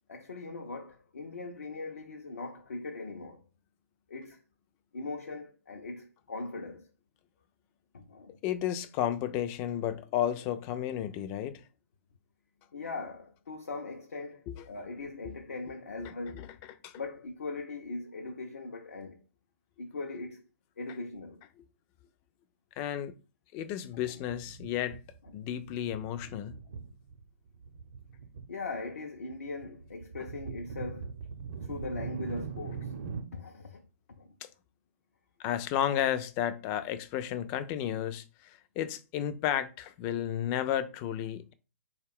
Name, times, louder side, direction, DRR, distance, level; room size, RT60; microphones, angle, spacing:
voice 1, 0.1-3.4 4.1-4.4 4.9-6.9 7.9-8.4 12.7-16.5 16.9-19.2 19.8-20.4 20.8-21.4 24.1-24.2 28.5-31.1 31.7-32.9 33.3-33.9 34.2-34.3, left 3 dB, 70° left, 0.6 m, -40 dB
voice 2, 8.4-11.6 14.5-14.6 16.0-16.5 16.8-17.0 22.8-23.1 23.5-25.0 25.3-26.6 35.4-41.5, left 11 dB, 30° left, 0.4 m, -32 dB
sound 1, 24.0-25.3 25.5-27.2 27.5-28.4 28.7-33.2, right 6 dB, 55° right, 0.7 m, -41 dB
4.1 x 2.3 x 3.5 m
figure-of-eight pair, 115°, 8 cm